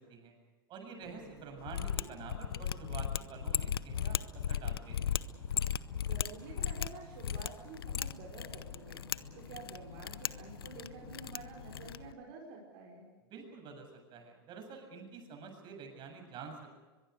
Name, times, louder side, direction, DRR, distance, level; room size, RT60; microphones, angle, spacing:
voice 1, 0.7-5.1 13.3-16.7, right 5 dB, 40° right, 4 dB, 7.3 m, -48 dB
sound 1, 1.0-12.1, right 3 dB, 20° left, 7.4 m, -57 dB
Mechanisms, 1.6-12.1, left 9 dB, 85° left, 0.8 m, -37 dB
voice 2, 5.9-9.0 9.3-13.1, right 4 dB, 60° right, -2 dB, 5.4 m, -49 dB
23.0 x 22.5 x 6.7 m, 1.3 s
hypercardioid pair, 105°, 12 cm